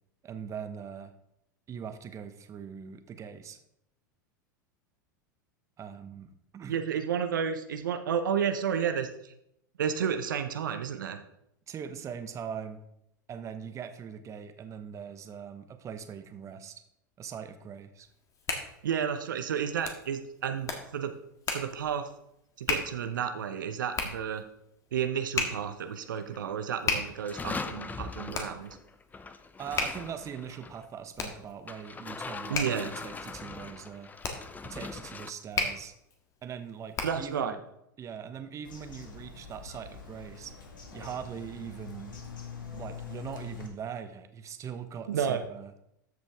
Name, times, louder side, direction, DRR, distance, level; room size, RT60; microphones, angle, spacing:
voice 1, 0.2-1.1 1.7-3.6 5.8-6.8 11.7-12.8 13.3-16.8 17.2-18.1 29.6-34.1 34.6-35.9 36.4-37.6 38.0-40.5 40.9-42.2 42.7-45.7, right 7 dB, 30° right, 9 dB, 0.9 m, -41 dB
voice 2, 6.7-9.3 9.8-11.2 18.8-21.1 21.5-22.1 22.6-24.4 24.9-28.8 32.5-32.9 37.0-37.6 45.1-45.4, right 7 dB, 75° right, 8 dB, 0.8 m, -31 dB
Hands, 18.1-37.4, left 4 dB, 30° left, 1.8 m, -37 dB
sound 1, 26.0-26.5 26.9-30.9 31.7-35.3, left 4 dB, 15° left, 0.7 m, -41 dB
Bird vocalization bird call bird song, 38.6-43.7, left 5 dB, 80° left, 1.8 m, -44 dB
13.5 x 5.2 x 3.5 m, 0.78 s
hypercardioid pair, 90°, 11 cm